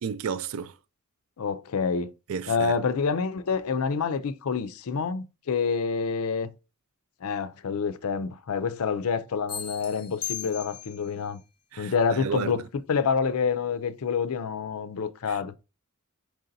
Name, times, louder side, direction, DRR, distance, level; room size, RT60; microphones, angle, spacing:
voice 1, 0.0-0.7 2.3-2.8 11.7-11.9 12.2-12.6 15.3-15.6, right 6 dB, 65° right, 0.4 m, -32 dB
voice 2, 1.4-2.1 2.5-6.5 7.2-11.4 11.8-12.6 12.9-15.5, left 5 dB, 75° left, 0.4 m, -27 dB
sound 1, 9.5-11.1, left 10 dB, 25° left, 0.7 m, -37 dB
4.7 x 3.9 x 2.6 m
head